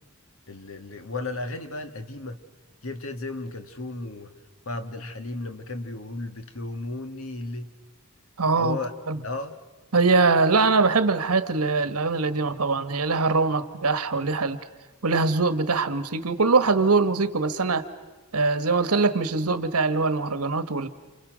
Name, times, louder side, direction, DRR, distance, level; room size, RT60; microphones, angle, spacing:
voice 1, 0.5-2.4 2.8-4.3 4.7-7.7 8.6-8.9 9.2-9.6, left 2 dB, 65° left, 8 dB, 1.7 m, -34 dB
voice 2, 8.4-8.8 9.1-9.2 9.9-14.6 15.0-17.8 18.3-20.9, right 4 dB, 85° right, 12 dB, 1.4 m, -22 dB
29.0 x 29.0 x 6.3 m, 1.2 s
head